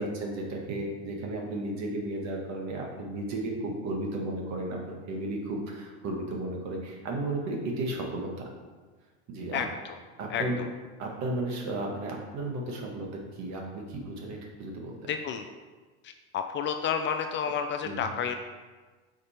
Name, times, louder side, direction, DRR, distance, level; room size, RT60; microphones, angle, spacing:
voice 1, 0.0-4.8 5.1-8.3 9.3-9.6 10.2-10.6 11.0-13.1 13.3-15.1 17.8-18.1, right 2 dB, 50° right, 1 dB, 1.5 m, -34 dB
voice 2, 9.5-10.0 10.3-10.7 15.1-15.5 16.0-18.4, left 7 dB, 35° left, 6 dB, 0.4 m, -31 dB
5.3 x 4.2 x 4.3 m, 1.4 s
supercardioid pair, 105°, 35 cm